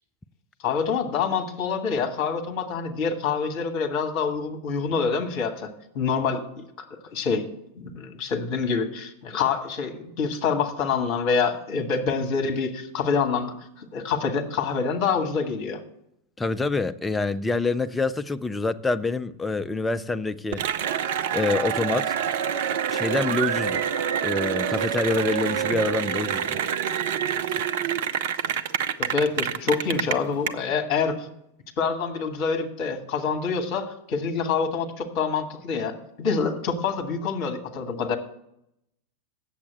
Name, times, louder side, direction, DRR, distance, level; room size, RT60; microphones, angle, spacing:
voice 1, 0.6-5.7 5.9-6.8 7.1-7.5 7.7-15.8 29.0-31.3 31.8-38.2, left 5 dB, 40° left, 1.4 m, -26 dB
voice 2, 16.4-20.6 21.3-22.2 22.9-23.8 24.2-26.6 27.5-27.6, left 3 dB, 10° left, 0.4 m, -26 dB
Cheering / Applause, 20.5-30.5, right 8 dB, 55° right, 0.6 m, -26 dB
8.4 x 7.2 x 7.7 m
figure-of-eight pair, 90°, 0 cm